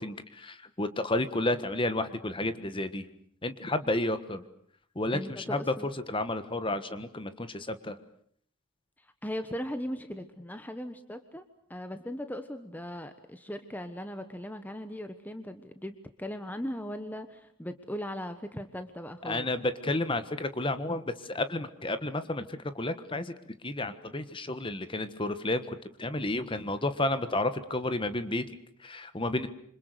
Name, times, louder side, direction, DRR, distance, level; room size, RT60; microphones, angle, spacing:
voice 1, 0.0-3.0 3.4-4.4 4.9-8.0 19.2-23.3 23.6-29.5, left 2 dB, 25° left, 11 dB, 1.4 m, -31 dB
voice 2, 5.1-5.9 9.2-11.4 11.7-19.5, equal, 10° left, 9 dB, 1.2 m, -38 dB
27.5 x 26.0 x 6.8 m, 0.64 s
head